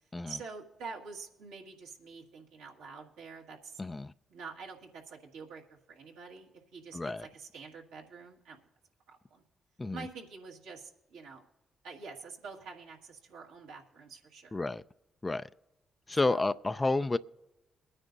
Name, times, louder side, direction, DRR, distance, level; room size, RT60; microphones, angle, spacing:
voice 1, 0.3-3.8 4.3-8.6 9.1-9.4 9.9-11.4 11.8-14.6 16.1-16.5, right 4 dB, 85° right, 1.8 m, -47 dB
voice 2, 3.8-4.1 6.9-7.3 9.8-10.1 14.5-14.8 15.2-15.5 16.1-17.2, left 2 dB, 25° left, 0.4 m, -30 dB
22.5 x 9.7 x 2.7 m
hypercardioid pair, 45°, 0 cm